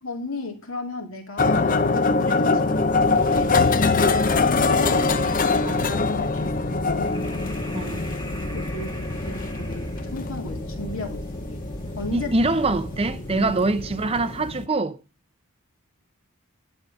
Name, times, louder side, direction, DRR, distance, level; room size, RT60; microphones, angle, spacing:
voice 1, 0.0-5.1 5.5-7.2 8.3-11.6 12.0-12.3 13.3-13.5, left 3 dB, 60° left, 3.0 m, -35 dB
sound 1, 1.4-14.6, left 3 dB, 35° left, 0.7 m, -24 dB
sound 2, 2.4-14.4, right 1 dB, 20° left, 2.0 m, -37 dB
voice 2, 12.1-15.0, right 2 dB, 25° right, 0.7 m, -24 dB
11.5 x 8.3 x 5.4 m
head